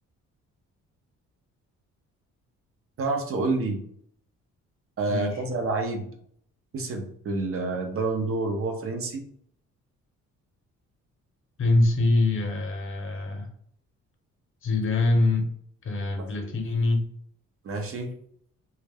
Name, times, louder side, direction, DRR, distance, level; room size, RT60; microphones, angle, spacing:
voice 1, 3.0-3.8 5.0-6.1 6.7-9.2 16.4-16.5 17.6-18.1, right 3 dB, 45° right, 4 dB, 0.7 m, -28 dB
voice 2, 5.1-5.4 11.6-13.5 14.6-15.5 15.8-17.0, left 2 dB, 45° left, 3 dB, 0.8 m, -24 dB
2.3 x 2.1 x 3.3 m, 0.65 s
cardioid pair, 90°, 30 cm